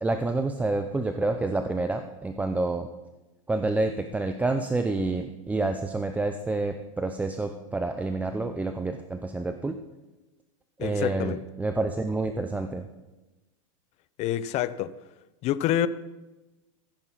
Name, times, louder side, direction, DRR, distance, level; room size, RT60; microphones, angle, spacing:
voice 1, 0.0-2.9 3.5-9.8 10.8-12.8, right 2 dB, 10° right, 0.6 m, -28 dB
voice 2, 10.8-11.4 14.2-14.9 15.4-15.9, left 12 dB, 40° left, 0.6 m, -27 dB
15.5 x 9.7 x 4.1 m
hypercardioid pair, 120°, 17 cm